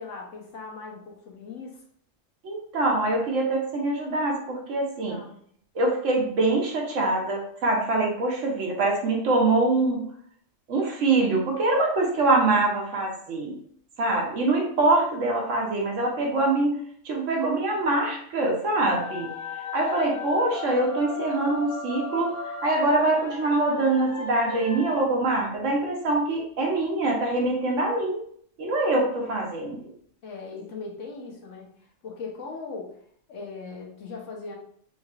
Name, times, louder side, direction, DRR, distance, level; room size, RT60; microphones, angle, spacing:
voice 1, 0.0-1.8 5.1-5.4 30.2-33.0 33.3-34.5, left 4 dB, 75° left, -1 dB, 1.1 m, -39 dB
voice 2, 2.4-5.2 5.7-10.0 10.7-13.5 14.0-19.3 19.5-28.2 28.6-29.8, right 2 dB, 75° right, 0 dB, 1.2 m, -24 dB
sound 1, 18.7-25.0, left 4 dB, 55° left, 0.9 m, -36 dB
3.6 x 3.1 x 2.4 m, 0.63 s
omnidirectional pair, 1.3 m